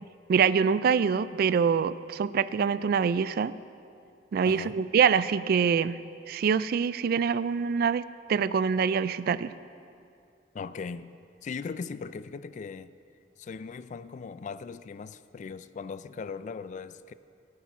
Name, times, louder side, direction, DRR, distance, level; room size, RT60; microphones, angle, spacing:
voice 1, 0.3-3.5 4.3-6.0 6.3-8.0 8.3-9.5, right 6 dB, 55° right, 16 dB, 0.3 m, -25 dB
voice 2, 4.4-4.8 10.5-12.9 13.4-17.1, left 5 dB, 40° left, 14 dB, 0.3 m, -39 dB
12.5 x 8.7 x 5.9 m, 2.5 s
head